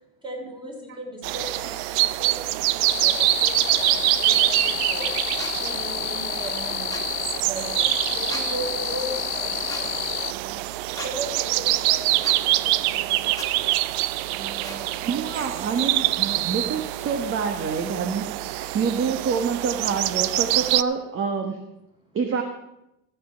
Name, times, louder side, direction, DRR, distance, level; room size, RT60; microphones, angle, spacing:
voice 1, 0.2-5.1 5.6-7.0 7.4-10.5 10.9-13.6 14.3-15.5, right 1 dB, 10° right, 1 dB, 3.5 m, -38 dB
sound 1, 1.2-20.8, right 17 dB, 65° right, 0.6 m, -25 dB
sound 2, 2.9-10.3, left 20 dB, 70° left, 0.6 m, -30 dB
sound 3, 5.4-5.5 6.9-7.1 8.3-8.5 9.7-9.8 10.9-11.1 12.2-12.4 13.3-13.5 14.6-14.8, left 3 dB, 10° left, 2.0 m, -36 dB
voice 2, 15.0-18.3 18.5-21.6 22.1-22.4, right 5 dB, 30° right, 6 dB, 1.2 m, -26 dB
14.0 x 7.8 x 5.7 m, 0.88 s
supercardioid pair, 115°, 41 cm